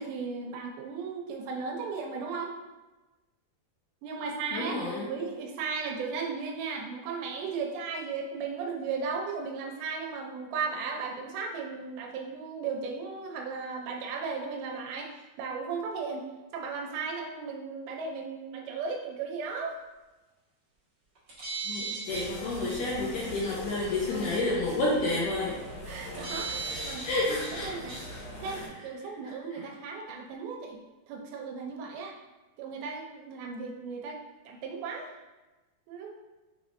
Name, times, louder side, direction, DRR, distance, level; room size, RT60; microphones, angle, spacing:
voice 1, 0.0-2.5 4.0-16.3 16.5-19.8 25.9-27.0 27.6-27.9 28.4-30.8 31.1-32.2 32.6-35.1 35.9-36.1, right 5 dB, 80° right, 1 dB, 2.4 m, -36 dB
voice 2, 4.5-5.1 21.7-25.5 26.7-27.7 28.1-28.2, left 2 dB, 75° left, -5 dB, 2.0 m, -30 dB
sound 1, 21.2-22.3 22.7-22.8 23.9-24.0 26.1-27.6 27.9-28.0, right 4 dB, 60° right, 1.1 m, -36 dB
sound 2, 22.1-28.7, equal, 60° left, 2.5 m, -41 dB
6.0 x 3.4 x 2.5 m, 1.1 s
omnidirectional pair, 4.4 m